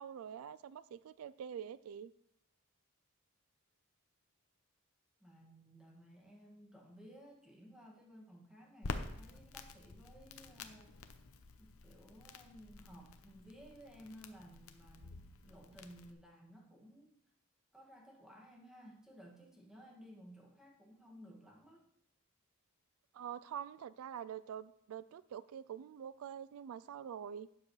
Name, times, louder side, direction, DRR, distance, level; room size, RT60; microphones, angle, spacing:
voice 1, 0.0-2.1 23.1-27.5, right 8 dB, 80° right, 17 dB, 0.3 m, -46 dB
voice 2, 5.2-11.0 11.6-17.1 17.7-21.8, equal, 5° right, -2 dB, 1.9 m, -57 dB
Crackle, 8.8-16.1, left 3 dB, 90° left, 0.8 m, -48 dB
12.0 x 8.9 x 3.2 m, 0.75 s
head